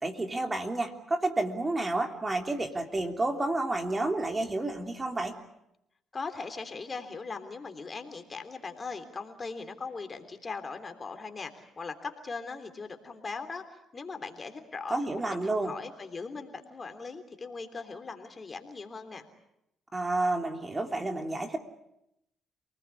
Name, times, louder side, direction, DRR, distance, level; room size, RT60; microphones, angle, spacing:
voice 1, 0.0-5.3 14.9-15.7 19.9-21.6, right 2 dB, 25° right, 4 dB, 3.2 m, -30 dB
voice 2, 6.1-19.2, left 4 dB, 35° left, 6 dB, 3.3 m, -40 dB
28.0 x 19.5 x 8.5 m, 0.83 s
supercardioid pair, 75°, 0 cm